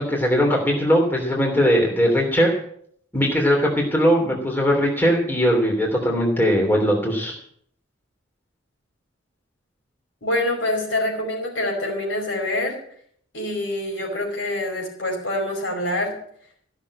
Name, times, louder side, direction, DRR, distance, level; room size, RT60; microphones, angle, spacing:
voice 1, 0.0-2.5 3.1-7.4, equal, 10° left, -1 dB, 3.0 m, -20 dB
voice 2, 10.2-12.8 13.3-16.2, left 1 dB, 70° left, 1 dB, 5.0 m, -25 dB
15.5 x 6.5 x 8.5 m, 0.64 s
head